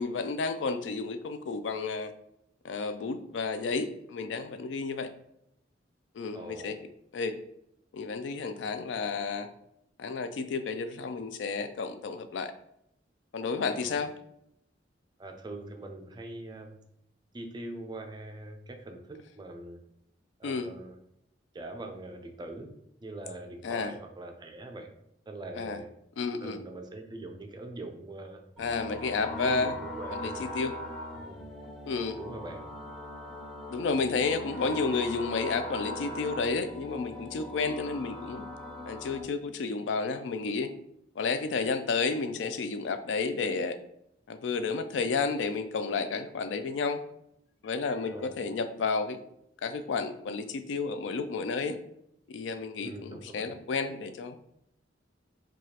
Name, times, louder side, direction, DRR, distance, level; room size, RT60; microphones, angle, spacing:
voice 1, 0.0-2.1 2.6-5.1 6.1-6.8 7.1-7.4 7.9-9.5 10.0-12.5 13.3-14.1 20.4-20.7 23.6-23.9 25.6-25.8 26.2-26.6 28.6-29.8 30.1-30.7 31.9-32.2 33.7-38.4 38.9-40.7 41.2-43.8 44.3-47.0 47.6-49.2 49.6-51.8 52.3-54.4, left 4 dB, 80° left, 10 dB, 0.4 m, -31 dB
voice 2, 6.3-6.8 13.8-14.1 15.2-16.8 17.3-19.8 20.4-21.0 21.5-22.7 23.0-24.9 25.3-25.9 26.4-28.4 29.3-30.5 31.2-31.4 32.2-32.6 48.1-48.3 52.8-53.5, right 2 dB, 25° right, 5 dB, 0.4 m, -43 dB
sound 1, 28.6-39.2, left 1 dB, ahead, 1.0 m, -40 dB
4.8 x 2.4 x 2.8 m, 0.76 s
head